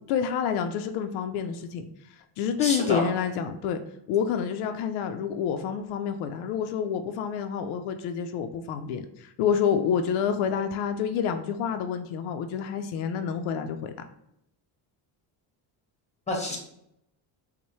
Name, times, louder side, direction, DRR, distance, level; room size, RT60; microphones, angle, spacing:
voice 1, 0.1-1.9 2.4-3.8 4.1-13.9, left 7 dB, 85° left, 7 dB, 0.5 m, -28 dB
voice 2, 2.6-3.1 16.3-16.6, left 2 dB, 15° left, 0 dB, 1.2 m, -28 dB
5.3 x 2.2 x 3.1 m, 0.79 s
cardioid pair, 110°, 48 cm